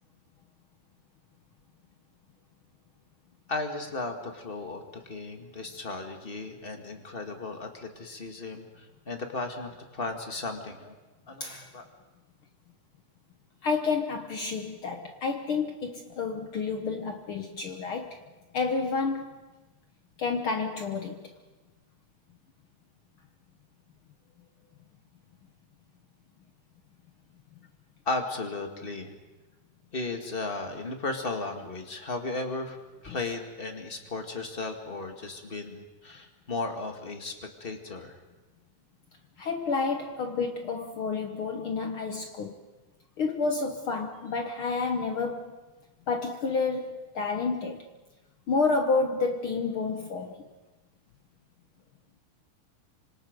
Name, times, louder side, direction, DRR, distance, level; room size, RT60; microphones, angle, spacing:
voice 1, 3.5-10.9 11.3-11.8 28.0-29.1 29.9-32.8 33.0-38.1, left 3 dB, 25° left, 4 dB, 1.3 m, -35 dB
voice 2, 11.4-11.7 13.6-18.2 18.5-19.4 20.2-21.3 33.1-33.2 39.4-42.6 43.2-45.6 46.1-47.9 48.5-50.5, left 4 dB, 65° left, 5 dB, 1.4 m, -30 dB
27.0 x 26.0 x 5.2 m, 1.2 s
omnidirectional pair, 3.8 m